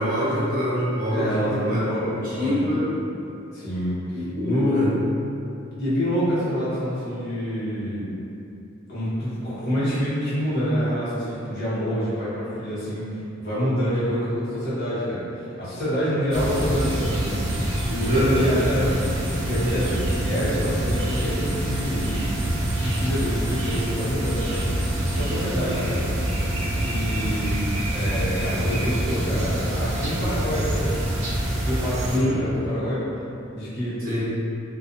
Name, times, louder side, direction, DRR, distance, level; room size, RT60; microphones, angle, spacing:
voice 1, 0.0-1.8 2.2-2.9 4.1-5.0 18.0-18.5 32.1-32.4 34.0-34.3, equal, 45° right, -10 dB, 0.8 m, -24 dB
voice 2, 1.1-2.6 3.5-4.9 5.8-8.1 8.9-13.0 13.4-15.2 15.6-18.8 19.3-22.1 22.7-24.6 25.1-26.0 26.6-27.6 27.9-31.0 31.5-33.0 33.5-33.9, equal, 55° left, -11 dB, 0.9 m, -27 dB
sound 1, 16.3-32.2, right 1 dB, 75° right, 0.6 m, -26 dB
2.5 x 2.3 x 2.5 m, 2.7 s
head